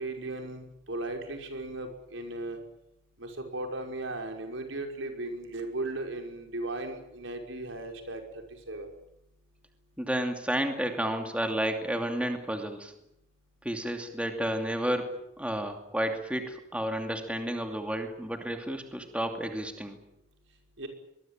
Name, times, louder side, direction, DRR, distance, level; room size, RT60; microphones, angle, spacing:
voice 1, 0.0-2.6 3.2-8.2 8.7-8.9 20.8-20.9, right 2 dB, 80° right, 4 dB, 5.6 m, -36 dB
voice 2, 10.0-12.9 13.6-20.0, right 1 dB, 5° right, 4 dB, 2.7 m, -31 dB
24.5 x 21.5 x 9.1 m, 0.81 s
head